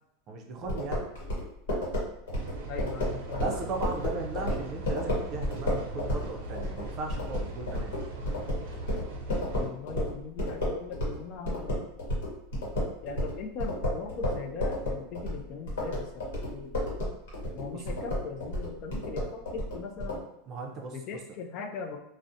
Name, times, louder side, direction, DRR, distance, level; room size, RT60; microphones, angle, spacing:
voice 1, 0.3-1.1 3.4-8.0 17.7-17.9 20.5-21.2, right 3 dB, 35° right, 2 dB, 0.4 m, -37 dB
sound 1, 0.7-11.2 11.4-20.2, left 1 dB, 85° left, 1.0 m, -31 dB
sound 2, 2.3-9.7, right 1 dB, 85° right, 0.5 m, -40 dB
voice 2, 2.7-3.4 9.6-11.9 13.0-16.9 17.5-20.2 20.9-22.0, left 5 dB, 40° left, 4 dB, 0.3 m, -39 dB
2.4 x 2.0 x 2.6 m, 0.83 s
supercardioid pair, 150°, 0 cm